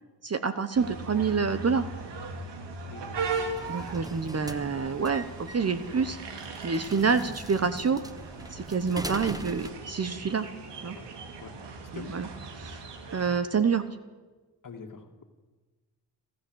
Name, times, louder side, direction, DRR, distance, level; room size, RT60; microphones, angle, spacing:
voice 1, 0.2-1.9 3.7-6.2 6.6-8.0 8.5-10.5 10.8-11.0 11.9-12.3 12.6-12.9 13.1-13.8, right 5 dB, 35° right, 11 dB, 1.1 m, -27 dB
sound 1, 0.7-13.4, right 3 dB, 85° right, 2.7 m, -39 dB
sound 2, 3.1-9.7, right 1 dB, 10° right, 1.2 m, -42 dB
voice 2, 14.6-15.2, left 5 dB, 50° left, 4 dB, 2.3 m, -44 dB
28.0 x 13.0 x 8.1 m, 1.3 s
cardioid pair, 80°, 41 cm